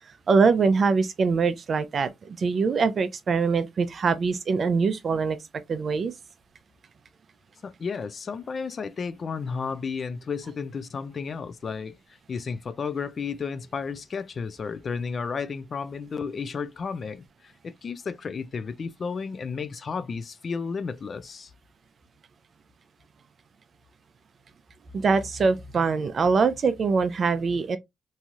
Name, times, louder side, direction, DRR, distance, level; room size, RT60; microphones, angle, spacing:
voice 1, 0.3-5.4 5.7-6.1 24.9-27.8, right 4 dB, 45° right, 0.5 m, -23 dB
voice 2, 7.6-12.0 12.3-21.5, left 5 dB, 45° left, 0.3 m, -33 dB
3.0 x 2.7 x 2.4 m
cardioid pair, 90°, 0 cm